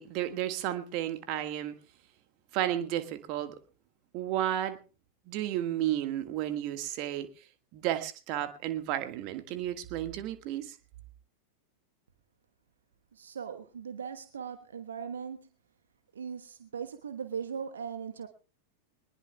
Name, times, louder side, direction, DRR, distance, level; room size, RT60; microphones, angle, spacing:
voice 1, 0.0-1.7 2.5-3.5 4.1-4.8 5.3-7.3 7.7-10.7, right 12 dB, 40° right, 9 dB, 1.6 m, -32 dB
voice 2, 13.1-15.5 16.1-18.3, right 7 dB, 70° right, 8 dB, 1.1 m, -39 dB
22.5 x 20.0 x 2.3 m, 0.36 s
figure-of-eight pair, 90°, 0 cm